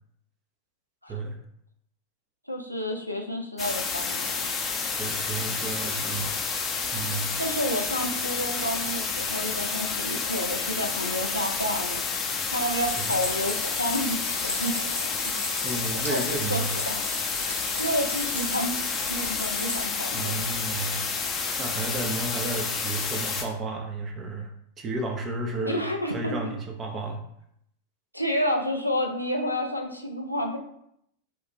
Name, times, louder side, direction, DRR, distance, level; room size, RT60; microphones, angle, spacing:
voice 1, 2.5-4.5 7.4-12.0 12.5-15.1 16.1-16.2 16.5-16.6 16.9-17.0 17.8-18.8 19.1-20.5 25.6-26.5 28.1-30.6, equal, 90° left, 1 dB, 0.5 m, -30 dB
sound 1, 3.6-23.4, left 5 dB, 25° left, 0.7 m, -30 dB
voice 2, 5.0-6.4 6.9-7.3 13.0-13.2 15.6-16.8 20.1-21.0 21.6-24.5 24.8-27.2, right 2 dB, 25° right, 3 dB, 0.7 m, -32 dB
Stream, 12.8-19.8, left 2 dB, 90° right, 1.1 m, -36 dB
4.5 x 2.5 x 3.0 m, 0.74 s
figure-of-eight pair, 90°, 0 cm